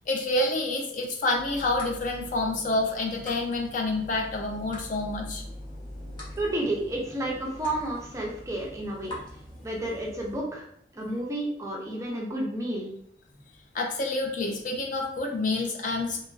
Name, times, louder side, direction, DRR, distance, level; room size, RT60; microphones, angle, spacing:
voice 1, 0.1-5.4 13.7-16.2, left 2 dB, 45° left, 2 dB, 0.4 m, -28 dB
sound 1, 1.3-10.4, left 1 dB, 25° left, 0.7 m, -43 dB
voice 2, 6.4-9.2 9.6-10.6 10.9-12.9, right 1 dB, 15° right, -2 dB, 0.5 m, -31 dB
2.9 x 2.4 x 2.4 m, 0.70 s
head